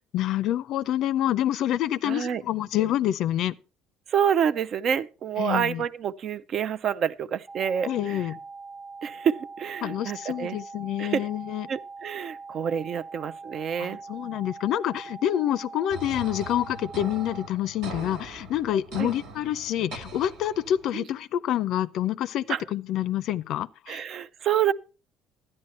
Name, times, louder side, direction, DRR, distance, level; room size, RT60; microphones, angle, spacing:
voice 1, 0.1-3.6 5.4-5.8 7.8-8.4 9.8-11.7 13.8-24.0, left 12 dB, 70° left, 0.5 m, -27 dB
voice 2, 2.0-2.4 4.1-8.2 9.0-10.6 11.0-11.3 11.7-14.0 19.0-19.1 20.9-21.0 22.5-22.6 23.9-24.7, right 8 dB, 55° right, 0.5 m, -27 dB
sound 1, 7.5-17.5, right 4 dB, 15° right, 0.9 m, -42 dB
sound 2, 15.9-20.9, right 2 dB, 80° right, 1.7 m, -41 dB
12.0 x 9.8 x 4.2 m
supercardioid pair, 80°, 0 cm